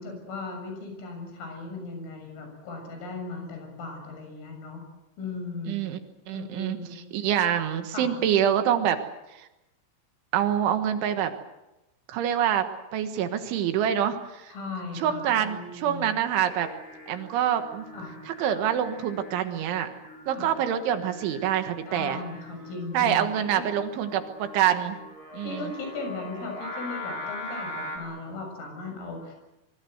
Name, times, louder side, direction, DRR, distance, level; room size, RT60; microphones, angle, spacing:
voice 1, 0.0-4.8 5.2-5.8 6.3-7.0 7.9-8.1 14.5-16.2 17.9-18.1 20.3-20.5 21.8-23.3 25.4-29.4, left 3 dB, 85° left, 4 dB, 9.6 m, -37 dB
voice 2, 5.7-6.0 6.3-6.8 7.1-9.0 9.3-9.5 10.3-11.3 12.1-12.7 12.9-14.5 15.0-16.7 17.1-17.8 18.3-19.9 20.3-22.2 22.9-25.0 25.3-25.7, right 10 dB, 75° right, 8 dB, 3.8 m, -26 dB
Singing, 16.5-28.0, left 1 dB, 20° left, 4.6 m, -42 dB
24.0 x 24.0 x 8.0 m, 0.96 s
omnidirectional pair, 5.8 m